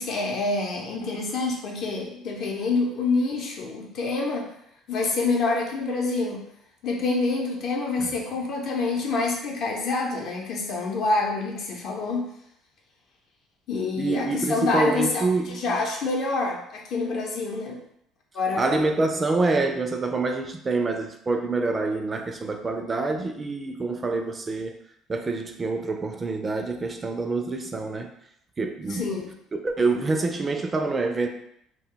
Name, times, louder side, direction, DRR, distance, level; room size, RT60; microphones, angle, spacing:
voice 1, 0.0-4.5 4.9-6.4 6.8-12.3 13.7-17.8 18.3-18.9 28.9-29.3, left 3 dB, 60° left, 0 dB, 0.7 m, -27 dB
voice 2, 14.0-15.6 18.6-24.7 25.1-28.1 28.6-29.0 29.5-31.3, right 3 dB, 30° right, 5 dB, 0.3 m, -26 dB
2.2 x 2.1 x 3.7 m, 0.73 s
supercardioid pair, 85°, 0 cm